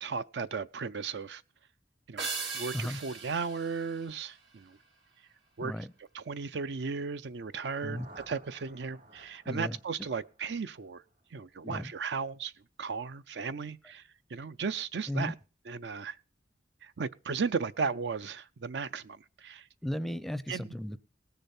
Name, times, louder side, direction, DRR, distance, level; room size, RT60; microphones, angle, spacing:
voice 1, 0.0-1.4 2.1-2.3 2.5-4.8 5.6-5.7 6.1-11.0 11.3-12.5 12.8-14.0 14.3-15.3 15.7-16.2 16.8-19.7 20.5-20.7, right 5 dB, 70° right, 0.5 m, -35 dB
sound 1, 2.2-4.8, right 4 dB, 85° right, 2.3 m, -39 dB
sound 2, 7.4-11.3, right 2 dB, 55° right, 2.4 m, -56 dB
voice 2, 9.5-9.8 11.6-11.9 15.1-15.3 19.8-21.0, equal, ahead, 0.5 m, -35 dB
19.0 x 6.7 x 4.3 m
head